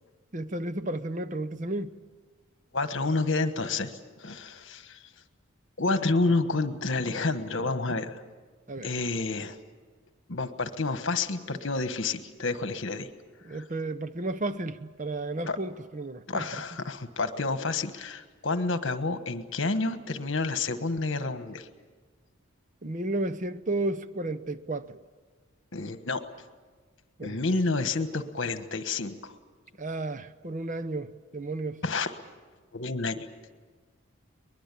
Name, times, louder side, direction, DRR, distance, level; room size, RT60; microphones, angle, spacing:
voice 1, 0.3-2.0 8.7-8.9 13.4-16.6 22.8-25.0 27.2-27.4 29.8-31.8, right 2 dB, 35° right, 0.7 m, -33 dB
voice 2, 2.7-5.0 5.8-8.2 8.8-9.6 10.3-13.1 13.5-13.6 15.5-15.6 16.3-21.7 25.7-26.2 27.2-29.3 31.8-32.2 32.7-33.3, left 3 dB, 65° left, 1.4 m, -29 dB
23.0 x 21.0 x 8.5 m
head